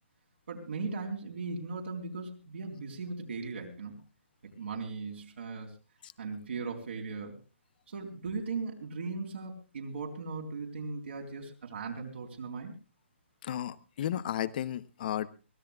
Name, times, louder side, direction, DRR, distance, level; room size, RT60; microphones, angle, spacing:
voice 1, 0.5-4.0 4.4-5.7 6.2-7.4 7.9-12.7, right 4 dB, 65° right, 0 dB, 4.1 m, -38 dB
voice 2, 13.4-15.3, left 11 dB, 45° left, 16 dB, 0.9 m, -34 dB
24.0 x 16.5 x 2.4 m, 0.33 s
hypercardioid pair, 145°, 7 cm